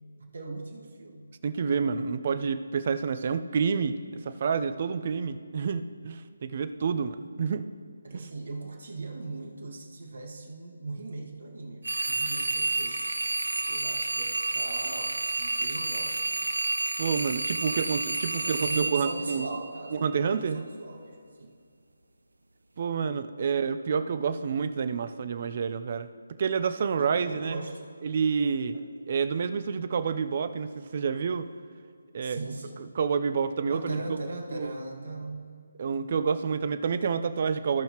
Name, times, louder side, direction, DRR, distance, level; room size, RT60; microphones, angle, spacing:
voice 1, 0.2-1.3 8.0-13.0 13.7-16.2 18.4-21.6 23.1-23.5 27.0-27.8 28.7-28.8 32.2-32.9 33.7-35.6 36.1-36.2, right 2 dB, 70° right, 0 dB, 1.9 m, -39 dB
voice 2, 1.4-4.0 4.2-7.7 8.1-8.3 17.0-19.5 19.9-20.7 22.8-26.1 26.4-27.6 28.0-28.8 29.1-31.5 32.1-32.4 33.0-34.2 34.5-34.7 35.8-37.8, right 6 dB, 45° right, 11 dB, 0.6 m, -28 dB
sound 1, 11.8-20.0, right 3 dB, 85° right, 0.6 m, -30 dB
17.0 x 5.6 x 3.0 m, 2.3 s
figure-of-eight pair, 155°, 0 cm